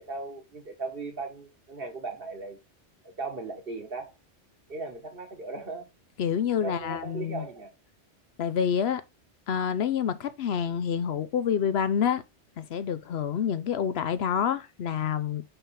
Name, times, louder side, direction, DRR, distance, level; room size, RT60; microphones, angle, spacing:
voice 1, 0.0-2.6 3.0-4.1 4.7-5.9 6.6-7.7, right 3 dB, 55° right, 1.5 m, -37 dB
voice 2, 6.2-7.4 8.4-9.0 9.5-12.2 12.6-15.4, left 8 dB, 65° left, 0.8 m, -27 dB
5.7 x 5.5 x 3.4 m
omnidirectional pair, 1.2 m